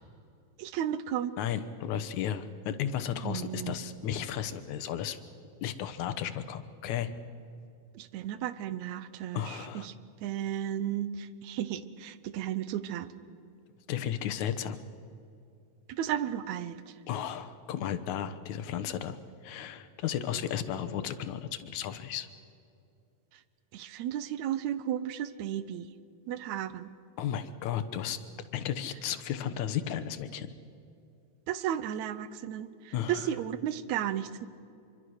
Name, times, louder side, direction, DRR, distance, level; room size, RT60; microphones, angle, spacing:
voice 1, 0.6-1.4 3.2-3.7 8.0-9.9 10.2-13.1 15.9-16.8 23.7-25.9 26.3-26.9 31.5-34.5, right 10 dB, 80° right, 14 dB, 2.2 m, -34 dB
voice 2, 1.4-5.2 5.6-7.1 9.3-9.9 13.9-14.8 17.1-19.2 19.4-22.3 27.2-28.2 28.5-30.5 32.9-33.3, left 9 dB, 80° left, 11 dB, 2.5 m, -34 dB
25.5 x 24.0 x 6.4 m, 2.6 s
omnidirectional pair, 3.3 m